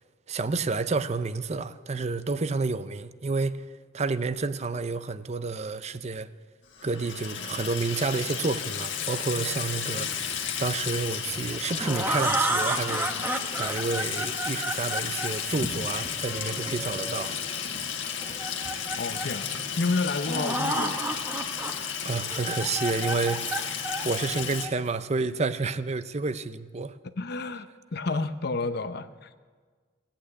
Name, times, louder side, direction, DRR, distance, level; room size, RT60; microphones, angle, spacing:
voice 1, 0.3-3.6 3.9-6.3 6.8-10.3 10.6-13.1 13.6-17.3 22.0-23.4 24.0-27.0, right 4 dB, 35° right, 0.5 m, -29 dB
Water tap faucet / Sink (filling or washing), 6.7-24.7, left 7 dB, 80° left, 1.6 m, -33 dB
sound 1, 11.4-17.3 18.2-19.4 19.9-20.0 20.2-21.7 22.1-24.9, right 1 dB, 10° right, 1.0 m, -31 dB
voice 2, 19.0-19.5 19.8-21.0 27.2-29.4, left 3 dB, 55° left, 0.7 m, -30 dB
17.0 x 8.8 x 8.4 m
head